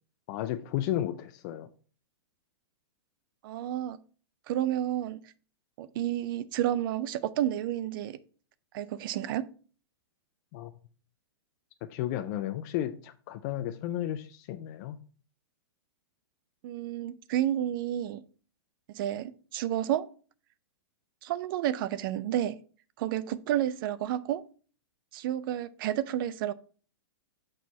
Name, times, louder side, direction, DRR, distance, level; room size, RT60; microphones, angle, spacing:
voice 1, 0.3-1.7 10.5-10.7 11.9-15.0, left 12 dB, 45° left, 0.5 m, -33 dB
voice 2, 3.4-4.0 4.5-5.3 5.8-8.2 8.7-9.5 16.6-18.2 18.9-20.1 21.2-22.6 23.0-24.4 25.1-26.5, right 12 dB, 50° right, 0.5 m, -30 dB
6.3 x 4.5 x 4.2 m
hypercardioid pair, 120°, 14 cm